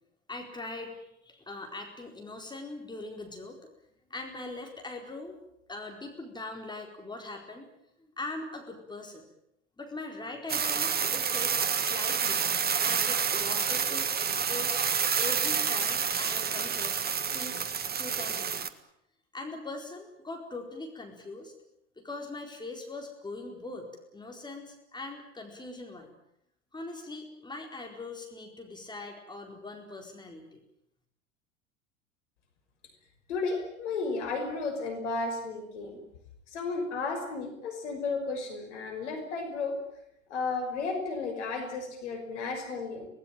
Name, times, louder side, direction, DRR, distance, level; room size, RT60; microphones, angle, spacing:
voice 1, 0.3-0.9 1.2-3.6 4.1-5.4 5.7-7.7 8.0-9.2 9.8-12.4 12.8-14.8 15.2-17.7 18.0-18.7 19.3-21.5 22.0-26.1 26.7-30.6, left 2 dB, 10° left, 2 dB, 4.6 m, -41 dB
sound 1, 10.5-18.7, right 7 dB, 25° right, 1.8 m, -28 dB
voice 2, 33.3-36.0 36.5-39.8 40.3-43.1, left 3 dB, 70° left, 5 dB, 5.9 m, -33 dB
24.5 x 19.0 x 9.1 m, 0.80 s
figure-of-eight pair, 80°, 37 cm